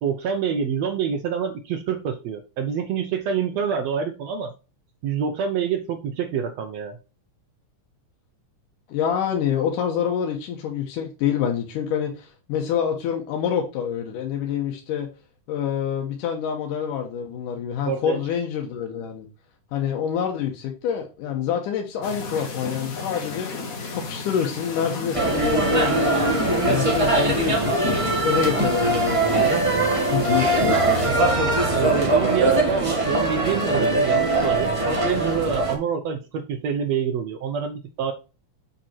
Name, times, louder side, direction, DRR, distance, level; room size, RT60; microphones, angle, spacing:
voice 1, 0.0-4.5 5.0-7.0 17.8-18.2 30.6-30.8 31.7-38.1, right 7 dB, 70° right, 1.7 m, -27 dB
voice 2, 8.9-15.1 15.5-19.3 19.7-23.5 23.9-29.5 30.1-31.0, left 8 dB, 90° left, 2.6 m, -27 dB
sound 1, 22.0-31.1, left 3 dB, 70° left, 0.8 m, -33 dB
sound 2, 25.1-35.7, right 2 dB, 50° right, 0.4 m, -21 dB
7.6 x 5.4 x 4.3 m
omnidirectional pair, 3.6 m